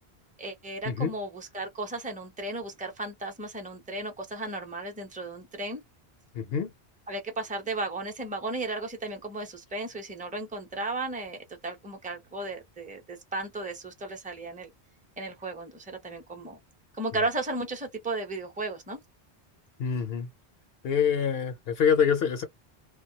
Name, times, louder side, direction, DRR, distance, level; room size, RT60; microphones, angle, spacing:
voice 1, 0.4-5.8 7.1-14.7 15.2-16.6 16.9-19.0, right 2 dB, 10° right, 0.6 m, -35 dB
voice 2, 6.3-6.7 19.8-20.3 20.8-22.4, left 7 dB, 70° left, 0.8 m, -25 dB
2.3 x 2.2 x 2.7 m
omnidirectional pair, 1.1 m